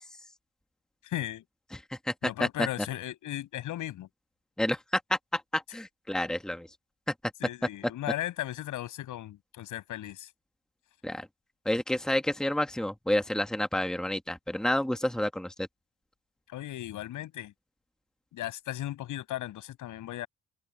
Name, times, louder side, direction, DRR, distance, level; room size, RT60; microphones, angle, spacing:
voice 1, 1.0-1.4 2.2-4.1 7.4-10.3 16.5-17.5 18.3-20.3, left 13 dB, 80° left, 7.9 m, -36 dB
voice 2, 4.6-6.7 11.0-11.3 11.6-15.7, left 1 dB, ahead, 1.6 m, -29 dB
open air
cardioid pair, 90°, 30 cm